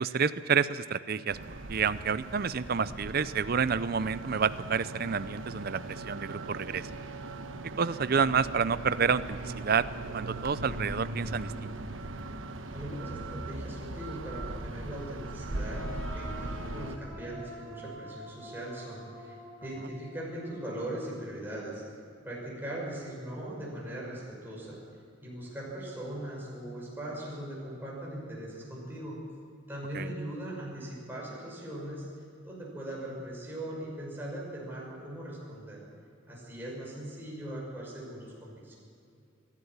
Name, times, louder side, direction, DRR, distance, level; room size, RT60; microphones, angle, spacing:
voice 1, 0.0-1.4 1.7-6.9 7.8-9.9 10.1-11.7 29.9-30.1, right 6 dB, 50° right, 14 dB, 0.6 m, -29 dB
sound 1, 1.3-17.0, right 2 dB, 80° right, 1.1 m, -39 dB
sound 2, 4.8-6.1 6.5-6.6 7.0-7.1 7.3-9.2 9.6-9.9 10.4-12.4, equal, 70° left, 6.6 m, -51 dB
voice 2, 12.7-21.8 22.2-24.8 25.2-29.2 29.7-32.1 32.4-35.8 36.3-38.7, right 1 dB, 10° right, -5 dB, 5.9 m, -40 dB
sound 3, 15.5-21.0, left 1 dB, 10° left, 7.4 m, -47 dB
23.0 x 12.0 x 10.0 m, 2.6 s
head